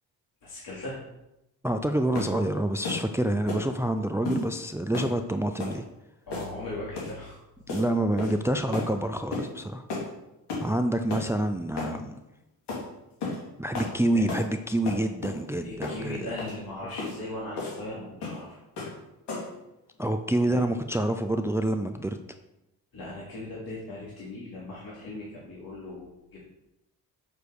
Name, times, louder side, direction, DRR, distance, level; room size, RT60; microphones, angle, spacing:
voice 1, 0.4-1.0 6.3-7.4 8.2-8.3 14.1-14.3 15.6-18.6 20.4-20.6 22.9-26.5, left 2 dB, 60° left, -7 dB, 3.0 m, -38 dB
voice 2, 1.6-5.8 7.7-9.8 10.6-12.2 13.6-16.3 20.0-22.2, right 1 dB, 5° right, 7 dB, 0.6 m, -27 dB
sound 1, 2.1-2.4 2.8-3.1 3.5-3.7 4.3-4.5 4.9-5.2 5.6-5.8 6.3-6.6 7.0-7.2 7.7-7.9 8.2-8.4 8.7-8.9 9.3-9.5 9.9-10.1 10.5-10.7 11.1-11.3 11.8-12.0 12.7-12.8 13.2-13.4 13.7-13.9 14.3-14.5 14.9-15.4 15.8-16.0 16.4-16.6 17.0-17.2 17.6-17.8 18.2-18.4 18.8-19.0 19.3-19.6, left 3 dB, 80° left, 2.8 m, -33 dB
6.8 x 6.6 x 4.9 m, 0.91 s
supercardioid pair, 55°, 41 cm